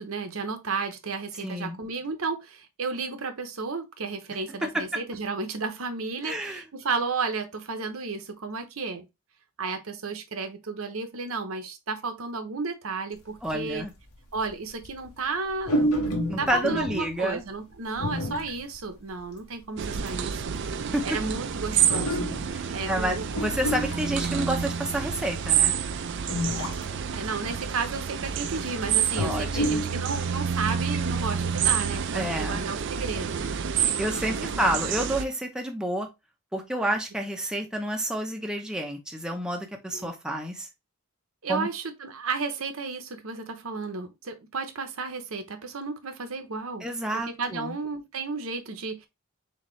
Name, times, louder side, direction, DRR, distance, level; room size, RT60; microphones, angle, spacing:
voice 1, 0.0-9.1 9.6-13.9 14.3-16.1 16.4-23.3 27.1-33.5 34.3-34.8 39.9-40.1 41.4-46.9 47.1-49.1, right 4 dB, 70° right, 0.8 m, -33 dB
voice 2, 1.4-1.8 6.2-6.6 13.4-13.9 16.3-17.4 20.9-21.0 22.5-25.7 29.2-29.8 32.1-32.6 33.7-36.1 36.5-40.7 41.5-41.7 46.8-47.7, right 1 dB, 5° right, 0.6 m, -29 dB
sound 1, 13.5-13.6 14.3-14.5 14.8-15.1 15.6-17.2 17.9-18.8 19.2-19.3 20.1-20.2 20.3-23.0 23.3-24.9 25.6-25.7 26.3-27.0 27.3-27.4 28.0-28.4 28.9-30.0 30.4-30.5 30.7-30.8, equal, 85° left, 1.4 m, -29 dB
sound 2, 19.8-35.2, right 8 dB, 55° right, 0.4 m, -28 dB
4.3 x 3.6 x 3.1 m
head